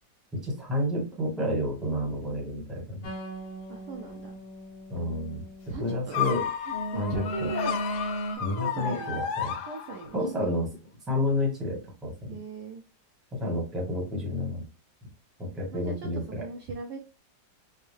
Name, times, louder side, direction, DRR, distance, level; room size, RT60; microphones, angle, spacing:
voice 1, 0.3-3.1 4.9-5.4 5.8-6.5 6.9-7.5 8.4-9.5 10.1-10.7 11.1-12.1 13.3-14.6 15.4-16.4, left 1 dB, ahead, -2 dB, 1.0 m, -30 dB
sound 1, 3.0-6.0 6.7-8.4, equal, 70° left, 1.4 m, -36 dB
voice 2, 3.7-4.3 5.7-6.2 6.6-7.8 8.5-9.2 9.7-10.5 12.3-12.8 15.7-16.1 16.4-17.0, right 4 dB, 75° right, 2 dB, 1.0 m, -39 dB
sound 2, 6.1-10.3, left 8 dB, 90° left, 1.4 m, -32 dB
4.4 x 2.1 x 3.3 m, 0.31 s
omnidirectional pair, 2.0 m